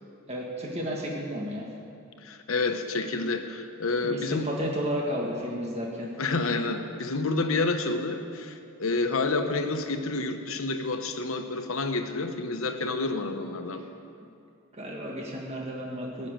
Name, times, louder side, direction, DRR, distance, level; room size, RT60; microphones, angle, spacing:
voice 1, 0.3-1.7 4.0-6.1 14.7-16.3, equal, 30° right, -2 dB, 1.6 m, -32 dB
voice 2, 2.2-4.5 6.2-13.8, left 3 dB, 80° left, 7 dB, 1.1 m, -29 dB
15.0 x 7.5 x 8.9 m, 2.5 s
head